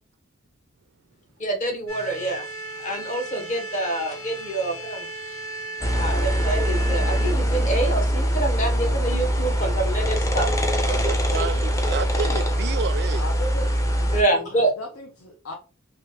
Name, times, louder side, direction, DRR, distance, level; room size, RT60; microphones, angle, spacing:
voice 1, 1.4-2.4 2.8-5.0 5.9-10.5 11.4-11.5 14.1-14.7, right 2 dB, 35° left, 0.9 m, -26 dB
sound 1, 1.9-7.3, right 2 dB, 65° left, 1.2 m, -36 dB
sound 2, 5.8-14.2, equal, 15° left, 0.5 m, -23 dB
voice 2, 10.9-13.2, right 6 dB, 55° right, 0.3 m, -30 dB
voice 3, 13.2-13.7 14.0-15.5, left 2 dB, 80° left, 0.7 m, -36 dB
3.0 x 2.9 x 3.2 m
head